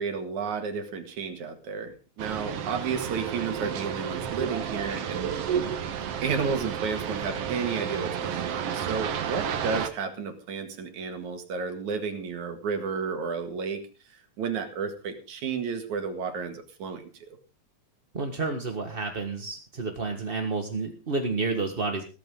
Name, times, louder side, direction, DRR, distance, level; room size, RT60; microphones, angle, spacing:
voice 1, 0.0-5.7 6.2-13.8 14.1-17.4, right 5 dB, 75° right, 6 dB, 3.3 m, -32 dB
sound 1, 2.2-9.9, right 8 dB, 60° right, 2.1 m, -31 dB
voice 2, 18.1-22.0, right 3 dB, 30° right, 4 dB, 1.1 m, -30 dB
16.5 x 14.0 x 3.8 m, 0.34 s
omnidirectional pair, 3.4 m